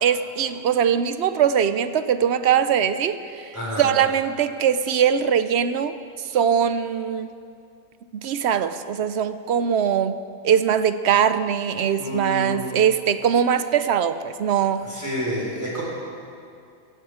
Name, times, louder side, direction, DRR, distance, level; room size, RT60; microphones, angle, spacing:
voice 1, 0.0-3.5 3.8-5.9 6.3-7.3 8.2-14.9, right 8 dB, 65° right, 12 dB, 0.7 m, -21 dB
voice 2, 3.5-3.9 12.0-12.7 14.8-15.8, equal, 10° right, -5 dB, 4.5 m, -29 dB
16.5 x 16.0 x 4.9 m, 2.4 s
omnidirectional pair, 1.6 m